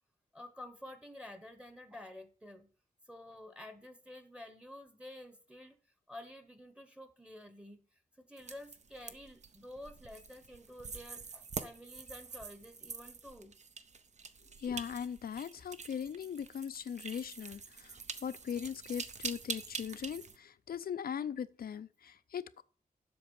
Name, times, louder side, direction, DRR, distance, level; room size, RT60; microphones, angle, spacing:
voice 1, 0.3-2.7 3.1-5.8 6.1-7.8 8.2-13.5, left 1 dB, 5° right, 1.0 m, -50 dB
sound 1, 8.4-20.4, right 5 dB, 50° right, 0.7 m, -46 dB
voice 2, 14.6-18.0 18.2-22.6, left 8 dB, 80° left, 0.5 m, -39 dB
7.9 x 6.0 x 7.0 m
wide cardioid pair, 165°, 15 cm